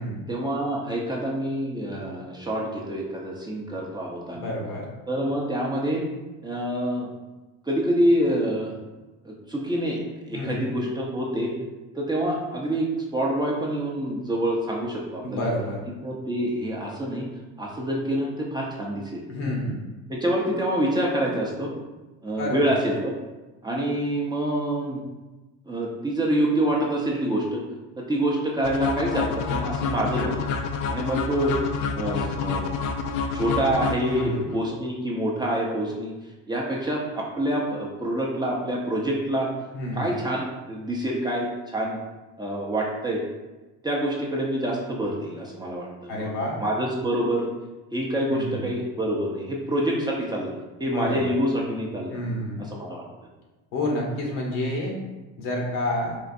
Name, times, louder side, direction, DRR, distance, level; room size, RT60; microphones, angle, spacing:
voice 1, 0.3-4.5 5.1-6.0 6.4-7.1 7.6-8.8 9.2-10.0 10.3-11.5 11.9-12.9 13.1-15.5 16.0-17.3 17.6-19.2 20.1-21.7 22.2-23.1 23.6-25.0 25.6-27.6 28.0-30.3 30.9-31.5 32.0-32.7 33.3-36.1 36.5-39.5 40.0-42.0 42.4-43.2 43.8-46.3 46.6-47.5 47.9-50.5 50.8-52.2 52.6-53.0, right 1 dB, 10° right, -3 dB, 0.5 m, -26 dB
voice 2, 4.3-4.9 10.3-10.7 15.2-15.9 19.3-19.8 22.4-22.8 34.1-34.5 39.7-40.1 46.1-46.6 48.3-48.6 50.8-51.3 52.1-52.6 53.7-55.0 55.4-56.2, left 1 dB, 75° left, -1 dB, 1.2 m, -29 dB
sound 1, 28.6-34.6, left 5 dB, 60° left, 0.5 m, -28 dB
4.4 x 2.4 x 2.5 m, 1.1 s
supercardioid pair, 100°, 37 cm